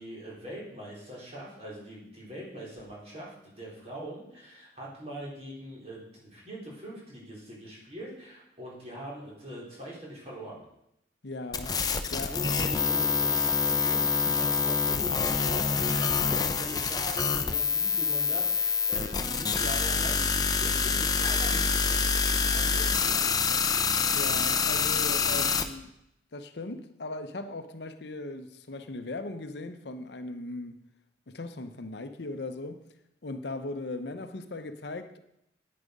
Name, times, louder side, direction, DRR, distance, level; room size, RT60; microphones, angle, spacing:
voice 1, 0.0-10.6 11.9-12.0 12.3-23.6, right 1 dB, 35° right, 4.1 m, -42 dB
voice 2, 11.2-11.7 12.1-12.4 14.3-14.4 24.1-25.9 26.3-30.8 31.3-32.8 33.2-35.2, left 2 dB, 65° left, 0.8 m, -38 dB
sound 1, 11.5-25.6, left 5 dB, 20° left, 0.7 m, -26 dB
9.8 x 9.6 x 5.3 m
head